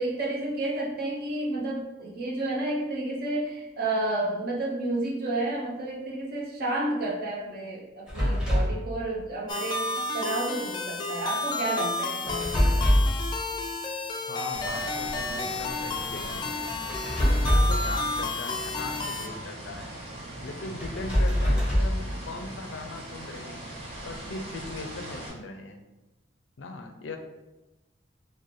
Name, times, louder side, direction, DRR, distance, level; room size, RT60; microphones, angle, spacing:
voice 1, 0.0-12.7, right 2 dB, 55° right, -4 dB, 1.0 m, -31 dB
sound 1, 8.1-8.8 12.3-13.2 16.9-17.9 20.8-22.0, equal, 5° right, 0.9 m, -23 dB
sound 2, 9.5-19.3, left 3 dB, 25° left, 0.3 m, -32 dB
voice 2, 14.3-16.6 17.3-19.9 20.4-23.6 24.0-25.8 26.6-27.2, left 3 dB, 85° left, 5 dB, 0.5 m, -39 dB
sound 3, 14.5-25.3, right 1 dB, 30° right, 1.1 m, -40 dB
4.6 x 2.2 x 3.0 m, 1.0 s
head